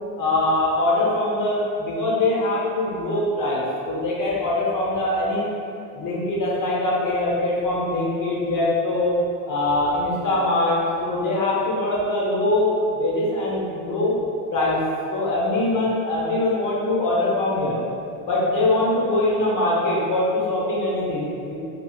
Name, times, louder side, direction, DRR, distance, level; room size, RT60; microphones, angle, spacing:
voice 1, 0.2-5.5 6.0-9.2 9.4-14.2 14.5-14.8 15.1-17.8 18.3-21.6, left 2 dB, 40° left, -5 dB, 0.9 m, -22 dB
2.9 x 2.3 x 2.3 m, 2.6 s
hypercardioid pair, 70°, 49 cm